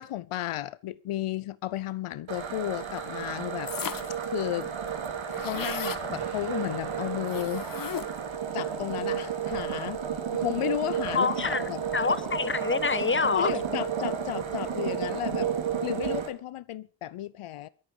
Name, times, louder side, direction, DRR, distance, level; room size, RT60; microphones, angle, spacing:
voice 1, 0.0-3.7 4.3-4.7 5.3-7.7 8.5-10.0 10.3-11.8 12.1-12.2 13.3-15.5 15.8-17.7, left 14 dB, 80° left, 0.8 m, -33 dB
sound 1, 2.3-16.3, right 7 dB, 65° right, 3.6 m, -32 dB
sound 2, 3.7-4.2 4.6-4.7 4.9-6.1 7.3-8.3, left 7 dB, 40° left, 1.0 m, -36 dB
Explosion, 6.1-9.1, right 6 dB, 50° right, 2.6 m, -47 dB
voice 2, 11.1-11.6 11.9-13.5, left 4 dB, 25° left, 1.3 m, -26 dB
22.5 x 9.1 x 4.8 m
cardioid pair, 90°, 50 cm